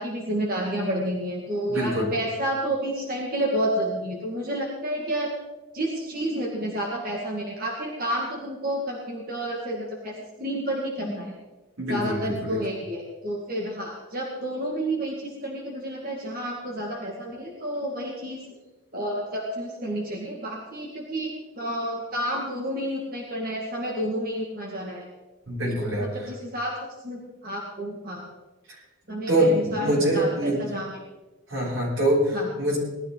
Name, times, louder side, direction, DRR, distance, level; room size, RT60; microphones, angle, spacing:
voice 1, 0.0-5.3 5.7-11.3 11.9-18.4 18.9-25.0 26.0-26.7 27.0-28.3 29.1-30.9 32.3-32.5, right 1 dB, 45° right, -2 dB, 2.0 m, -30 dB
voice 2, 1.7-2.1 11.0-11.2 11.8-12.6 25.5-26.3 28.7-28.8 29.3-30.6 31.5-32.8, right 1 dB, 85° right, -5 dB, 6.4 m, -24 dB
19.0 x 12.5 x 3.9 m, 1.1 s
head